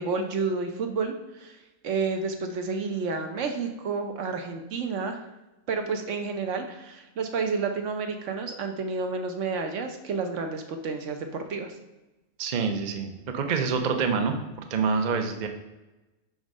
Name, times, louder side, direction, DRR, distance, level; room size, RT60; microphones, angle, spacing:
voice 1, 0.0-1.6 1.8-5.2 5.7-11.7, right 4 dB, 65° right, 5 dB, 0.9 m, -30 dB
voice 2, 12.4-14.4 14.7-15.5, right 5 dB, 50° right, 5 dB, 0.5 m, -26 dB
6.1 x 3.8 x 5.4 m, 1.1 s
omnidirectional pair, 1.5 m